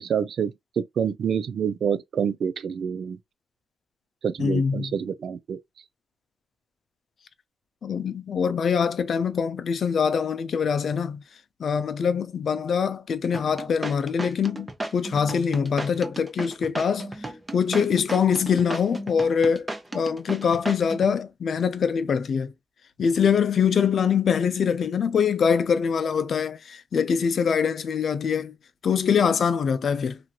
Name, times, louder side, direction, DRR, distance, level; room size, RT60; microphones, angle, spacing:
voice 1, 0.0-3.2 4.2-5.6, right 7 dB, 75° right, 0.3 m, -27 dB
voice 2, 4.4-5.0 7.8-11.2 11.6-17.1 17.5-22.5 23.0-28.6 28.8-30.2, left 6 dB, 65° left, 0.4 m, -24 dB
sound 1, 13.3-21.1, right 1 dB, 20° right, 0.6 m, -34 dB
2.9 x 2.6 x 2.3 m
cardioid pair, 100°, 0 cm